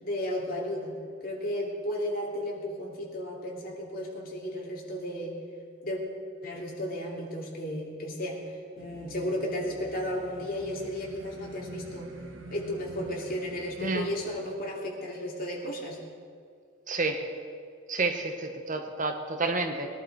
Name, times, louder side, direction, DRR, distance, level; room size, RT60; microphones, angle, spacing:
voice 1, 0.0-5.3 5.8-6.0 6.4-8.4 8.8-12.1 12.5-16.0, left 1 dB, 50° left, -2 dB, 2.6 m, -34 dB
sound 1, 8.8-14.5, right 1 dB, 90° right, 1.6 m, -46 dB
voice 2, 16.9-17.2 17.9-19.9, right 3 dB, 40° right, 5 dB, 1.2 m, -29 dB
21.0 x 11.5 x 4.7 m, 2.2 s
head